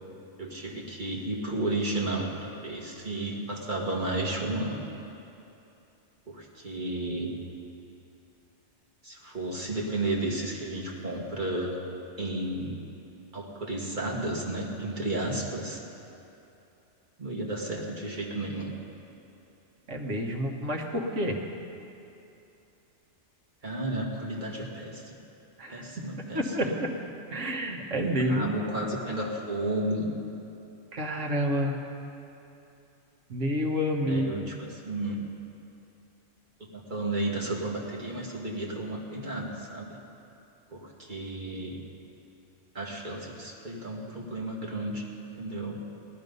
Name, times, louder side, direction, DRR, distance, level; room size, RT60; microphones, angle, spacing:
voice 1, 0.4-4.8 6.3-7.3 9.0-11.8 12.2-12.8 13.3-15.8 17.2-18.7 23.6-25.0 25.7-26.7 28.0-30.1 34.0-35.2 36.6-40.0 40.7-41.8 42.7-45.1 45.4-45.8, right 2 dB, 35° right, -2 dB, 2.0 m, -32 dB
voice 2, 19.9-21.4 25.6-25.9 26.3-26.9 27.3-28.5 30.9-31.8 33.3-34.6, equal, 65° right, 0 dB, 1.7 m, -29 dB
18.0 x 12.5 x 5.4 m, 2.8 s
omnidirectional pair, 1.3 m